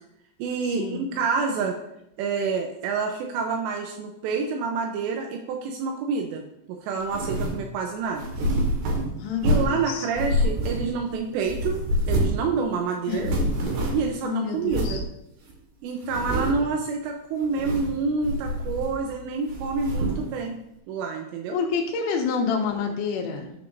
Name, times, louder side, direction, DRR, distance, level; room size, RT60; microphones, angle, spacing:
voice 1, 0.4-1.8 2.2-8.2 9.4-13.3 13.9-15.0 15.8-20.6 20.9-21.6, right 4 dB, 85° right, 2 dB, 2.5 m, -28 dB
sound 1, 7.1-7.6 8.2-9.8 10.2-11.1 11.4-12.5 12.7-12.8 13.1-14.1 14.7-15.0 15.5-15.6 16.0-16.7 17.4-18.0 18.2-19.1 19.5-20.3, equal, 65° right, 3.1 m, -26 dB
voice 2, 9.2-10.1 13.1-13.3 14.2-15.0 21.5-23.5, left 6 dB, 80° left, 2 dB, 3.6 m, -28 dB
13.0 x 6.9 x 2.6 m, 0.80 s
omnidirectional pair, 5.9 m